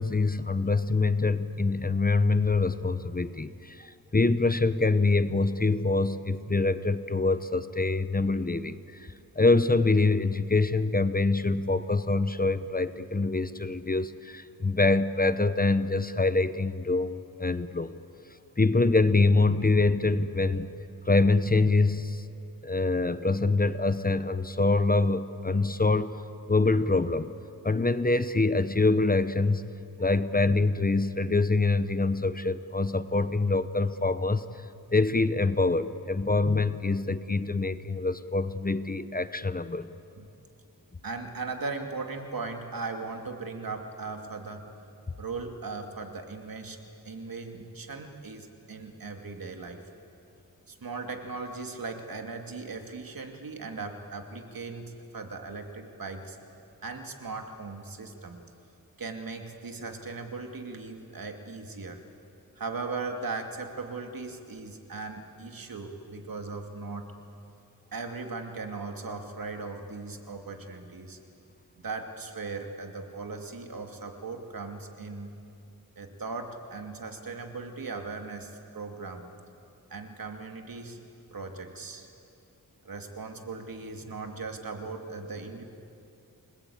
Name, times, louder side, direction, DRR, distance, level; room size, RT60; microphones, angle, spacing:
voice 1, 0.0-17.9 18.6-20.7 21.0-22.2 22.6-26.2 26.5-27.3 27.6-29.7 30.0-34.7 34.9-39.9, left 3 dB, 25° left, 12 dB, 0.8 m, -25 dB
voice 2, 41.0-44.7 45.2-46.8 47.0-49.8 50.7-56.4 56.8-58.4 59.0-62.0 62.6-67.1 67.9-71.2 71.8-75.3 76.0-79.3 79.9-81.0 81.3-82.1 82.8-85.6, right 4 dB, 70° right, 4 dB, 2.5 m, -38 dB
29.0 x 20.5 x 8.7 m, 2.7 s
wide cardioid pair, 90°, 36 cm